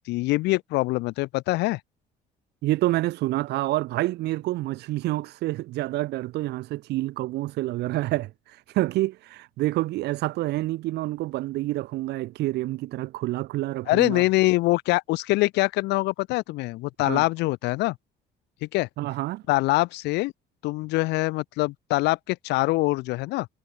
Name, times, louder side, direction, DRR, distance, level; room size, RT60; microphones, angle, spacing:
voice 1, 0.0-1.8 13.9-17.9 18.6-18.9 19.5-20.3 20.6-23.5, left 21 dB, 90° left, 1.5 m, -24 dB
voice 2, 2.6-14.2 17.1-17.2 19.0-19.4, right 17 dB, 80° right, 4.5 m, -28 dB
cardioid pair, 110°, 17 cm